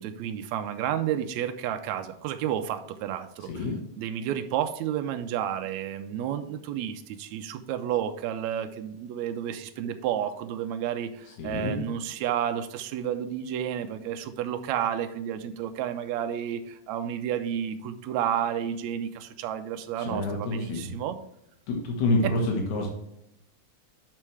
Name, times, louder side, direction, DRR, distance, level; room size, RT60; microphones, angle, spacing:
voice 1, 0.0-3.7 4.0-21.2 22.2-22.3, right 10 dB, 80° right, 8 dB, 1.9 m, -31 dB
voice 2, 3.5-3.8 11.4-11.8 20.0-21.0 21.7-22.9, left 2 dB, 80° left, 0 dB, 2.7 m, -27 dB
11.0 x 4.6 x 3.3 m, 0.80 s
omnidirectional pair, 3.3 m